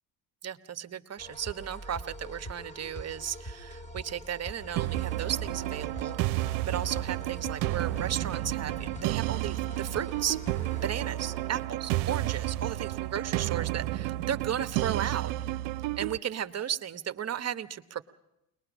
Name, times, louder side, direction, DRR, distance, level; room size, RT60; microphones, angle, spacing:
voice 1, 0.4-6.2 6.6-10.4 10.8-15.3 15.9-18.0, right 9 dB, 30° right, 11 dB, 1.1 m, -35 dB
sound 1, 1.2-14.6, right 1 dB, 15° left, 2.6 m, -44 dB
sound 2, 4.8-16.2, right 16 dB, 70° right, 0.7 m, -31 dB
22.0 x 20.5 x 6.2 m, 0.87 s
hypercardioid pair, 70°, 47 cm